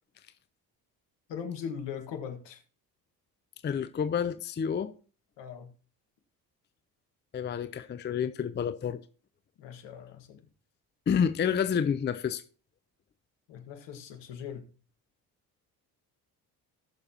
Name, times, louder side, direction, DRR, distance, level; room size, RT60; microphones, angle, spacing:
voice 1, 1.3-2.6 5.4-5.7 9.6-10.4 13.5-14.7, left 7 dB, 60° left, 1.7 m, -40 dB
voice 2, 3.6-4.9 7.3-9.0 11.1-12.4, left 7 dB, 25° left, 0.6 m, -29 dB
18.0 x 6.7 x 2.9 m
hypercardioid pair, 50°, 48 cm